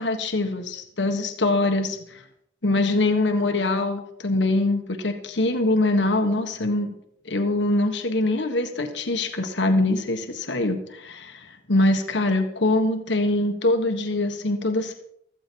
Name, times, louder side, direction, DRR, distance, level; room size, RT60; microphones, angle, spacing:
voice 1, 0.0-2.2 2.6-6.9 7.2-14.9, left 2 dB, 80° left, 5 dB, 1.6 m, -23 dB
15.5 x 14.0 x 4.7 m, 0.72 s
head